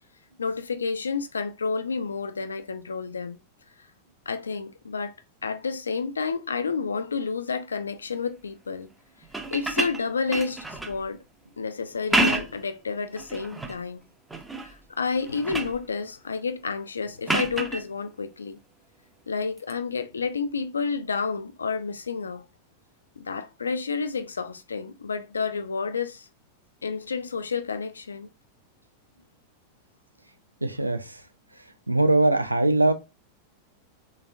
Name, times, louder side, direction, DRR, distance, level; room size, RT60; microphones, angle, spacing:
voice 1, 0.4-3.4 4.3-5.2 5.4-8.9 9.5-11.2 11.6-14.0 14.6-18.6 19.3-22.5 23.2-26.3 26.8-28.3, left 5 dB, 75° left, 0.4 m, -30 dB
sound 1, 9.2-11.0 11.9-12.7 13.2-13.8 14.3-14.8 15.1-15.8 17.3-17.8 19.6-19.7, right 2 dB, 10° right, 0.5 m, -28 dB
voice 2, 30.6-31.0 31.9-32.9, right 2 dB, 85° right, 0.4 m, -21 dB
3.3 x 3.1 x 2.4 m
figure-of-eight pair, 90°, 0 cm